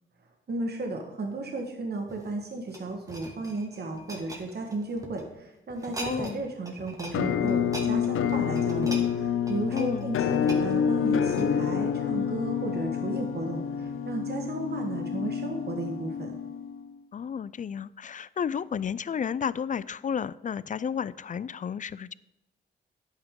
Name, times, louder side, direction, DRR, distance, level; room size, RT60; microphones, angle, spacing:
voice 1, 0.5-16.3, right 2 dB, 50° right, 1.6 m, -34 dB
sound 1, 2.1-5.2 5.7-6.4 6.6-7.2 7.5-11.7 12.3-12.5, right 1 dB, 15° right, 2.0 m, -42 dB
voice 2, 6.0-6.4 9.7-10.1 17.1-22.1, left 7 dB, 40° left, 0.4 m, -32 dB
Musical instrument, 7.1-16.9, left 7 dB, 80° left, 0.6 m, -28 dB
10.5 x 9.0 x 3.8 m
cardioid pair, 70°, 21 cm